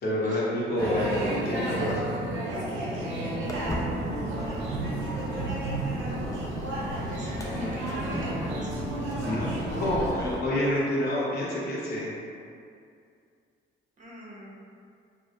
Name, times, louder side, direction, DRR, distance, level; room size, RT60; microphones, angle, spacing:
voice 1, 0.0-2.2 7.5-7.9 9.2-12.1, left 1 dB, 55° left, -6 dB, 0.7 m, -28 dB
sound 1, 0.8-10.1, right 1 dB, 75° right, 0.6 m, -32 dB
Guitar, 3.0-6.8 7.4-12.2, equal, 90° left, 0.8 m, -41 dB
Walk footsteps, 3.5-10.4, left 1 dB, 15° left, 0.3 m, -38 dB
voice 2, 4.4-4.8 7.1-8.9 14.0-14.6, equal, 40° right, -6 dB, 0.6 m, -44 dB
2.3 x 2.0 x 2.7 m, 2.4 s
cardioid pair, 90°, 20 cm